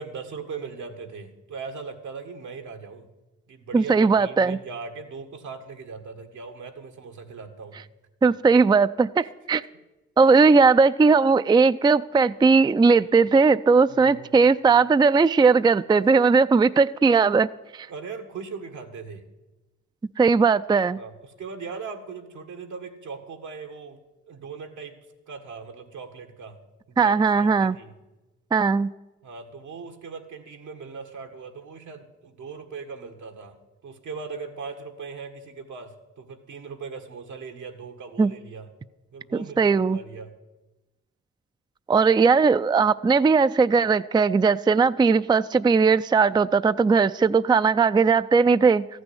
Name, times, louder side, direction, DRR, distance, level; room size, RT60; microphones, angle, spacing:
voice 1, 0.0-3.1 3.5-7.8 13.9-14.4 17.9-19.2 20.9-24.0 24.3-25.0 25.3-26.6 26.9-27.9 29.2-33.6 33.8-38.7 39.1-40.3, right 5 dB, 80° right, 5 dB, 1.7 m, -39 dB
voice 2, 3.7-4.6 8.2-9.6 10.2-17.5 17.7-17.9 20.2-21.0 27.0-27.8 28.5-28.9 38.2-38.3 39.6-40.0 41.9-48.9, right 4 dB, 15° right, 13 dB, 0.4 m, -18 dB
14.5 x 6.3 x 9.9 m, 1.0 s
supercardioid pair, 55°, 29 cm